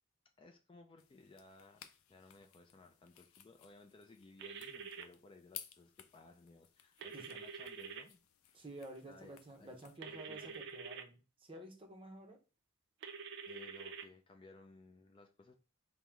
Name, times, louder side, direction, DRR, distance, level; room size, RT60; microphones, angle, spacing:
voice 1, 0.4-8.6 9.1-9.8 10.0-10.6 13.5-15.5, left 3 dB, 25° left, 4 dB, 0.3 m, -60 dB
sound 1, 1.0-10.0, left 10 dB, 90° left, 0.4 m, -58 dB
sound 2, 4.4-5.0 7.0-8.0 10.0-11.0 13.0-14.0, right 5 dB, 55° right, 0.4 m, -47 dB
voice 2, 8.5-12.4, right 1 dB, 25° right, 2 dB, 0.7 m, -51 dB
3.7 x 2.1 x 4.4 m, 0.33 s
head